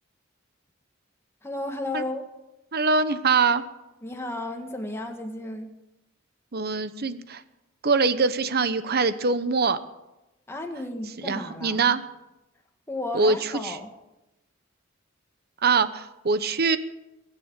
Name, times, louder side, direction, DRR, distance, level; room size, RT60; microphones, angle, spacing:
voice 1, 1.4-2.2 4.0-5.7 10.5-11.8 12.9-13.9, left 1 dB, 15° left, 3 dB, 1.7 m, -33 dB
voice 2, 2.7-3.6 6.5-7.4 7.8-9.8 11.2-12.0 13.1-13.8 15.6-16.8, right 4 dB, 55° right, 12 dB, 1.0 m, -23 dB
22.0 x 7.5 x 8.5 m, 0.97 s
head